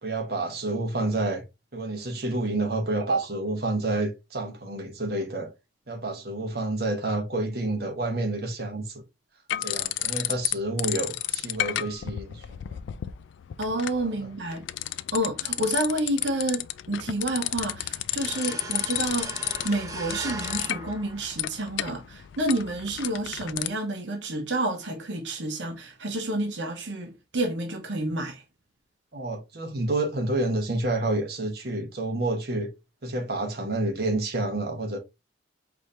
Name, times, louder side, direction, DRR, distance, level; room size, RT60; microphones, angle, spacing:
voice 1, 0.0-1.4 1.7-5.5 5.9-9.0 9.6-12.8 29.1-32.7 33.0-35.0, right 2 dB, 55° right, 1.0 m, -29 dB
sound 1, 9.5-10.5 10.8-23.7, left 13 dB, 85° left, 0.3 m, -32 dB
voice 2, 13.6-14.7 15.1-19.3 19.6-28.4, right 1 dB, 80° right, 0.9 m, -29 dB
sound 2, 18.2-21.8, right 3 dB, 20° right, 0.7 m, -38 dB
4.7 x 2.7 x 3.2 m
head